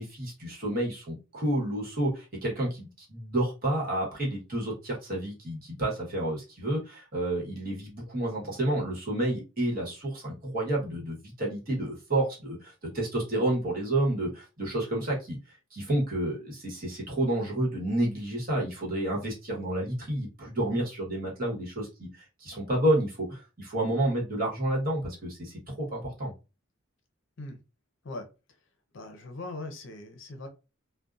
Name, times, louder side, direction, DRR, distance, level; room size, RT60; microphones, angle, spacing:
voice 1, 0.0-15.4 15.7-26.3, right 1 dB, 45° right, 1.1 m, -30 dB
voice 2, 28.9-30.5, left 2 dB, 60° left, 0.5 m, -40 dB
2.6 x 2.1 x 2.4 m
head